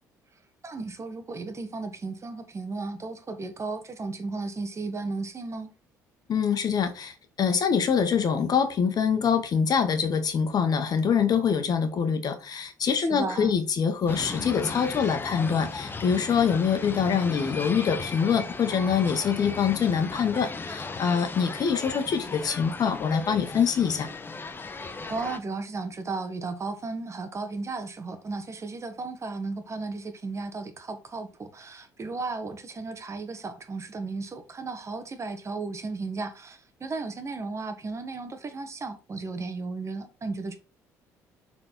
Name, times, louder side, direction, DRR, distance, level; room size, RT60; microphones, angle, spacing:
voice 1, 0.6-5.7 13.0-13.6 25.1-40.6, right 3 dB, 35° right, 1.6 m, -35 dB
voice 2, 6.3-24.1, left 7 dB, 50° left, 1.5 m, -25 dB
sound 1, 14.1-25.4, left 3 dB, 25° left, 1.0 m, -36 dB
6.6 x 4.4 x 4.4 m
hypercardioid pair, 60°, 8 cm